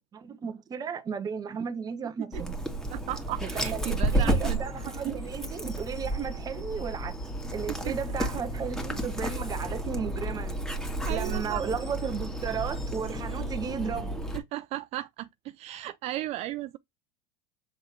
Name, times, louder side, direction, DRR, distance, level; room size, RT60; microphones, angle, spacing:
voice 1, 0.0-2.6 3.4-7.2 7.5-10.6 11.1-14.2, right 6 dB, 25° right, 1.3 m, -34 dB
Dog, 2.3-14.4, right 1 dB, 5° left, 2.1 m, -32 dB
voice 2, 2.9-4.6 7.9-8.0 11.1-11.6 14.3-15.3 15.5-16.8, right 15 dB, 45° right, 0.6 m, -35 dB
8.0 x 3.7 x 4.4 m
supercardioid pair, 135°, 15 cm